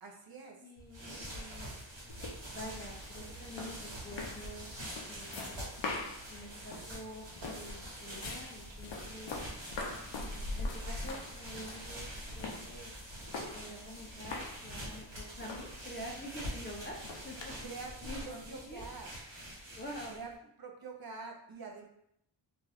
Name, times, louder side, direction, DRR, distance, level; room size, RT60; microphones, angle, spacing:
voice 1, 0.0-0.7 17.6-17.9 18.3-19.1 20.1-20.3 20.6-21.8, right 4 dB, 55° right, 2 dB, 0.5 m, -46 dB
voice 2, 0.6-1.8 2.5-4.7 5.1-5.7 6.3-9.4 10.1-13.0 13.5-17.5 18.0-18.8 19.7-20.2, equal, 25° left, -2 dB, 0.3 m, -47 dB
sound 1, 0.8-20.3, right 1 dB, 70° right, 1.2 m, -45 dB
sound 2, 2.1-17.7, left 2 dB, 70° left, 0.6 m, -44 dB
2.5 x 2.3 x 3.2 m, 0.74 s
wide cardioid pair, 130°, 46 cm